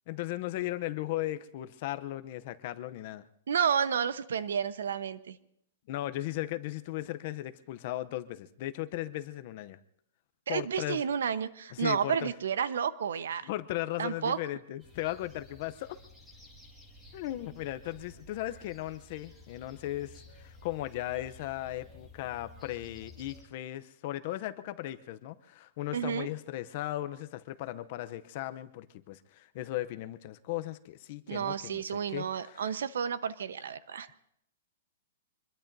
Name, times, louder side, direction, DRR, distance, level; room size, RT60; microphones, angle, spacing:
voice 1, 0.1-3.3 5.9-9.8 10.5-11.0 11.7-12.3 13.4-16.0 17.1-32.7, left 15 dB, 35° left, 12 dB, 0.6 m, -37 dB
voice 2, 3.5-5.4 10.5-13.5 14.0-14.4 25.9-26.3 31.3-34.1, right 7 dB, 85° right, 13 dB, 1.0 m, -31 dB
sound 1, 14.8-23.4, left 2 dB, ahead, 1.9 m, -54 dB
25.5 x 21.5 x 2.7 m, 0.71 s
hypercardioid pair, 175°, 0 cm